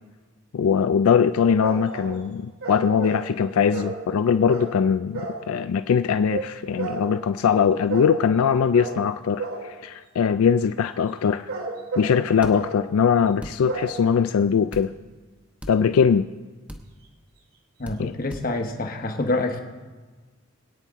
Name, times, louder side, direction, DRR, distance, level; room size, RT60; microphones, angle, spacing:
voice 1, 0.5-11.5 12.0-14.9 15.7-16.3 18.0-18.1, left 7 dB, 85° left, 11 dB, 0.4 m, -21 dB
sound 1, 1.6-2.2 2.6-3.3 3.7-4.0 4.5-4.7 5.1-5.4 6.3-6.5 6.8-7.1 7.9-8.2 8.7-9.0 9.4-9.7 11.2-12.2 12.5-12.8 13.7-14.0, right 3 dB, 80° right, 2.5 m, -31 dB
sound 2, 12.4-12.6 13.4-13.6 14.7-14.9 15.6-15.8 16.7-16.8 17.8-18.0 18.3-18.5, equal, 5° right, 0.9 m, -37 dB
voice 2, 17.8-19.6, left 2 dB, 40° left, 5 dB, 1.1 m, -26 dB
21.5 x 9.1 x 3.6 m, 1.3 s
head